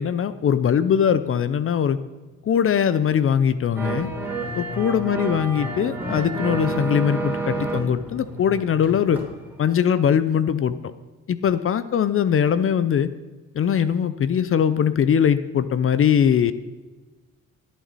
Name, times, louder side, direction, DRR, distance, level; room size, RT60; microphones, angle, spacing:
voice 1, 0.0-2.0 2.4-4.1 4.6-9.2 9.6-10.7 11.3-13.1 13.5-16.5, left 8 dB, 45° left, 14 dB, 0.6 m, -21 dB
sound 1, 3.8-9.3 9.6-9.7, right 2 dB, 5° right, 3.4 m, -29 dB
17.5 x 9.4 x 4.2 m, 1.3 s
cardioid pair, 90°, 30 cm